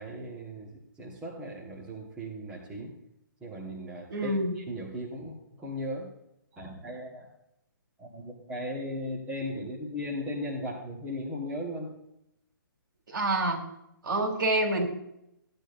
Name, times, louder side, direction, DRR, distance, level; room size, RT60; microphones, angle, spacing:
voice 1, 0.0-2.9 3.4-6.1 6.5-7.3 8.0-12.0, equal, 10° right, -4 dB, 1.4 m, -37 dB
voice 2, 4.1-4.5 13.1-13.6 14.0-14.9, right 1 dB, 70° right, 1 dB, 3.0 m, -27 dB
15.5 x 9.1 x 2.6 m, 0.80 s
hypercardioid pair, 165°, 12 cm